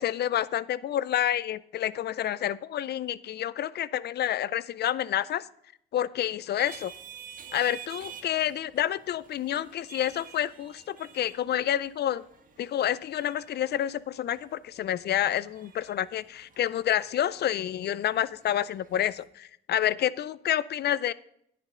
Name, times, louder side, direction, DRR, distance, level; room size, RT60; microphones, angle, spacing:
voice 1, 0.0-5.5 5.9-6.9 7.5-12.2 12.6-21.1, left 11 dB, 55° left, 19 dB, 0.4 m, -29 dB
sound 1, 6.6-19.3, right 7 dB, 45° right, 1.4 m, -50 dB
10.5 x 9.4 x 3.7 m, 0.72 s
cardioid pair, 90°, 20 cm